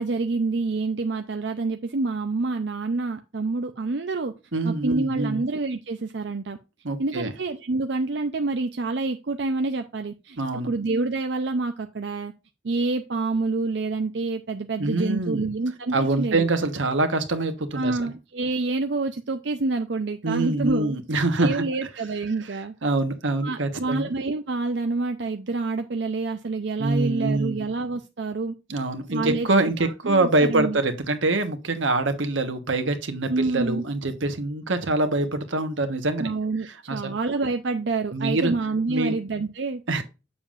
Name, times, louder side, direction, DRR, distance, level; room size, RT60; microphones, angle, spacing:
voice 1, 0.0-4.3 4.6-6.6 7.0-10.4 10.7-12.3 12.6-16.5 17.7-21.0 21.4-22.7 23.4-28.5 29.1-30.8 33.3-33.8 36.2-39.8, right 3 dB, 65° right, 0.6 m, -27 dB
voice 2, 4.5-5.4 6.8-7.3 10.4-10.7 14.8-15.5 15.9-18.1 20.2-21.6 22.8-24.1 26.8-27.6 28.7-36.3 36.9-37.2 38.1-38.5 38.9-39.1 39.9-40.0, right 2 dB, 90° right, 1.3 m, -25 dB
7.3 x 6.9 x 2.5 m
head